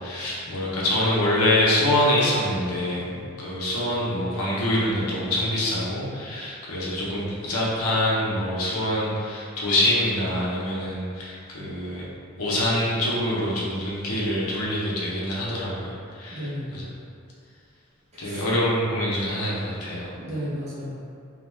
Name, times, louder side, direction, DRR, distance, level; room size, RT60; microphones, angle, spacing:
voice 1, 0.0-12.1 12.4-16.9 18.2-20.1, left 1 dB, 80° left, -6 dB, 0.6 m, -25 dB
voice 2, 16.3-16.8 18.1-18.4 20.2-21.1, equal, 30° right, -10 dB, 0.8 m, -33 dB
2.3 x 2.2 x 3.0 m, 2.4 s
head